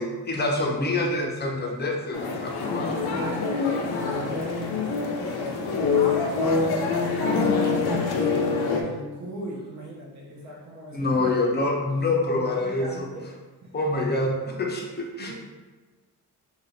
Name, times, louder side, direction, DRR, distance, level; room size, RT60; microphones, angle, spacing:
voice 1, 0.0-3.0 10.9-13.1 13.7-15.3, left 2 dB, 25° left, 0 dB, 0.7 m, -26 dB
sound 1, 2.1-8.8, left 4 dB, 85° left, 0.7 m, -25 dB
voice 2, 3.0-11.3 12.6-13.3 13.6-13.7 14.4-14.5 15.3-15.4, right 1 dB, 50° right, -3 dB, 0.9 m, -38 dB
3.7 x 2.4 x 4.2 m, 1.3 s
wide cardioid pair, 130°, 38 cm